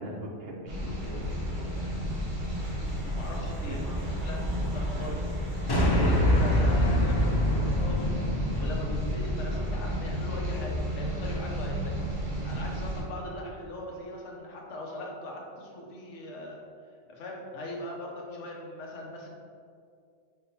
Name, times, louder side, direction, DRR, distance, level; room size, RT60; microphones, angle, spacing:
voice 1, 0.0-1.9 3.7-3.9 4.9-5.2, right 1 dB, 60° right, -1 dB, 0.8 m, -41 dB
sound 1, 0.7-13.0, equal, 40° right, 1.3 m, -32 dB
voice 2, 2.9-4.5 4.7-5.2 5.7-8.1 8.6-12.0 12.4-16.6 17.1-19.3, left 1 dB, 75° left, -1 dB, 1.0 m, -40 dB
sound 2, 5.7-10.1, equal, 35° left, 0.4 m, -25 dB
4.6 x 3.6 x 2.8 m, 2.2 s
omnidirectional pair, 1.2 m